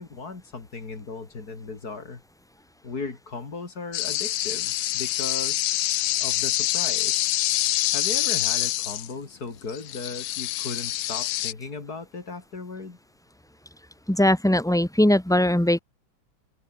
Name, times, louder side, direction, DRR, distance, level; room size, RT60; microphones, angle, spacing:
voice 1, 0.0-2.2 2.8-5.7 6.2-7.3 7.9-13.0, left 4 dB, 50° left, 3.5 m, -36 dB
sound 1, 3.9-9.1 9.7-11.5, left 15 dB, 80° left, 1.5 m, -26 dB
voice 2, 14.1-15.8, left 1 dB, 5° left, 0.7 m, -20 dB
omnidirectional pair, 2.1 m